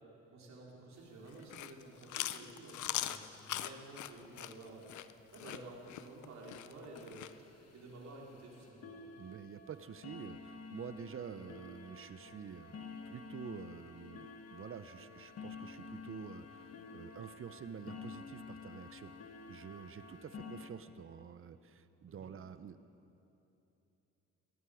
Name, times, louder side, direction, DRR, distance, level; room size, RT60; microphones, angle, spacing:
voice 1, 0.3-4.9 5.3-9.0 22.1-22.3, right 2 dB, 65° right, -3 dB, 3.7 m, -52 dB
sound 1, 1.0-1.1 1.3-1.4 1.6-1.8 2.1-2.5 3.2-3.3 3.9-4.0 4.3-4.4 4.8-4.9 5.4-5.5 5.9-6.1 6.5-6.6 6.9-20.7, left 5 dB, 55° left, 1.4 m, -51 dB
Chewing mastication, 1.3-7.3, left 13 dB, 75° left, 0.6 m, -41 dB
voice 2, 9.2-12.8 13.1-19.1 19.5-22.8, right 7 dB, 45° right, 12 dB, 0.8 m, -48 dB
20.5 x 13.5 x 5.0 m, 2.9 s
cardioid pair, 90°, 30 cm